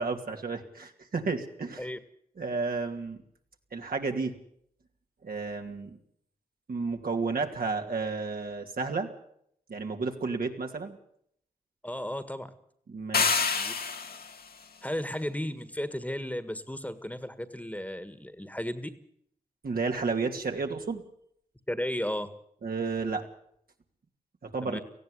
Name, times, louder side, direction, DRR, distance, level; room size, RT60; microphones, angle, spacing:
voice 1, 0.0-1.9 2.4-3.2 3.7-4.4 5.2-6.0 6.7-9.1 9.7-11.0 12.9-13.4 19.6-21.0 22.6-23.2 24.4-24.8, right 4 dB, 70° right, 3 dB, 2.7 m, -32 dB
voice 2, 11.8-12.5 13.5-13.7 14.8-18.9 21.7-22.3 24.6-24.8, left 1 dB, 10° left, 13 dB, 1.7 m, -34 dB
sound 1, 13.1-14.4, left 5 dB, 75° left, 1.8 m, -27 dB
18.0 x 15.5 x 10.0 m, 0.70 s
cardioid pair, 50°, 16 cm